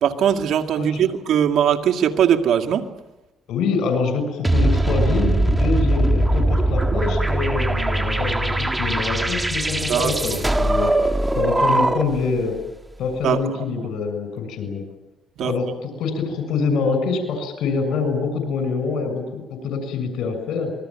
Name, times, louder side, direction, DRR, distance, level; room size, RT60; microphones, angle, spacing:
voice 1, 0.0-2.8 9.9-10.1 13.2-13.4 15.4-15.5, right 9 dB, 75° right, 6 dB, 2.2 m, -20 dB
voice 2, 0.8-1.1 3.5-10.9 11.3-12.6 13.0-14.8 15.4-20.7, left 4 dB, 80° left, 8 dB, 6.8 m, -25 dB
sound 1, 4.4-12.3, right 1 dB, 15° right, 1.7 m, -20 dB
26.0 x 21.0 x 9.1 m, 1.0 s
cardioid pair, 90°, 0 cm